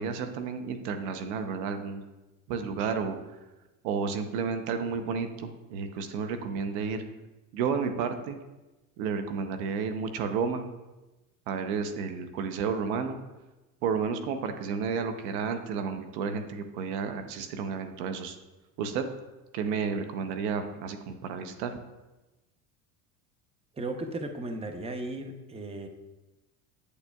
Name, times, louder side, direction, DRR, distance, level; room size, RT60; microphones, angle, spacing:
voice 1, 0.0-2.0 2.5-3.2 3.8-7.0 7.5-8.4 9.0-10.6 11.5-13.2 13.8-18.4 18.8-19.0 19.5-21.7, right 6 dB, 75° right, 7 dB, 0.8 m, -31 dB
voice 2, 23.7-25.9, right 2 dB, 15° right, 5 dB, 0.8 m, -35 dB
8.2 x 8.1 x 2.3 m, 1.1 s
hypercardioid pair, 85°, 44 cm